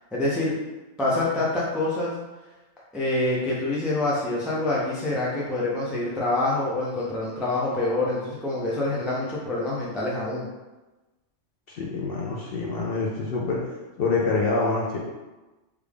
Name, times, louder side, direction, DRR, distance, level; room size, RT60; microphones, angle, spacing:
voice 1, 0.1-0.5 1.0-2.1 2.9-10.5, left 2 dB, ahead, -6 dB, 0.3 m, -26 dB
voice 2, 11.7-13.6 14.0-15.0, left 3 dB, 60° left, -4 dB, 0.6 m, -26 dB
3.3 x 2.4 x 3.4 m, 1.1 s
omnidirectional pair, 1.3 m